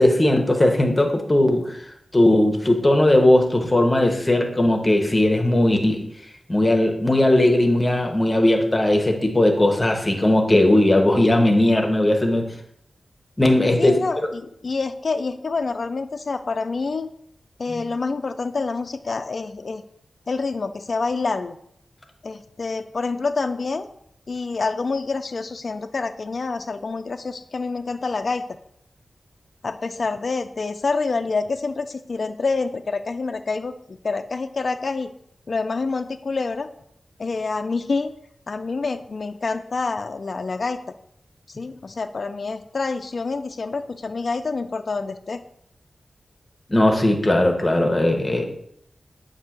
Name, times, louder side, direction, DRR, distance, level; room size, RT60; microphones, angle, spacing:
voice 1, 0.0-1.7 2.1-6.0 6.5-12.5 13.4-14.0 17.7-17.8 46.7-48.4, left 1 dB, 25° left, 3 dB, 0.9 m, -18 dB
voice 2, 13.8-17.1 17.6-19.8 20.3-21.6 22.2-23.9 24.3-28.4 29.6-35.1 35.5-36.7 37.2-38.1 38.5-40.8 41.5-45.4, left 4 dB, 60° left, 8 dB, 0.3 m, -27 dB
7.5 x 2.7 x 5.8 m, 0.72 s
wide cardioid pair, 95°, 0 cm